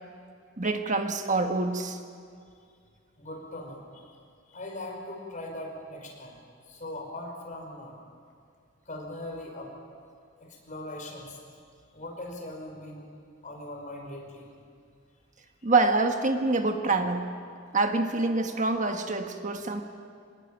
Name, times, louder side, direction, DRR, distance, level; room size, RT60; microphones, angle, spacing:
voice 1, 0.6-2.0 15.6-17.3 17.7-19.8, right 3 dB, 40° right, 5 dB, 1.4 m, -26 dB
voice 2, 3.2-4.1 4.5-6.4 6.7-8.0 8.9-9.7 10.4-11.4 11.9-13.1 13.4-14.5 15.6-15.7, left 1 dB, 40° left, 1 dB, 5.3 m, -40 dB
25.5 x 19.5 x 9.1 m, 2.2 s
head